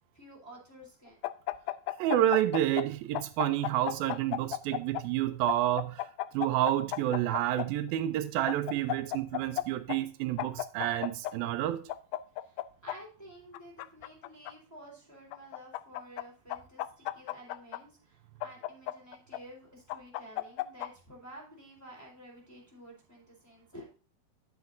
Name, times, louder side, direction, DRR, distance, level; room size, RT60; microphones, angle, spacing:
voice 1, 0.1-1.2 12.4-23.8, right 1 dB, 5° left, 3.6 m, -51 dB
sound 1, 1.2-2.9 3.1-5.0 5.5-7.7 8.5-9.6 9.9-10.0 10.4-11.3 11.9-13.0 13.5-14.5 15.3-16.2 16.5-17.8 18.4-19.4 19.9-20.9, left 16 dB, 85° left, 1.8 m, -34 dB
voice 2, 2.0-11.9, right 13 dB, 90° right, 2.5 m, -29 dB
10.5 x 8.1 x 2.6 m
omnidirectional pair, 4.1 m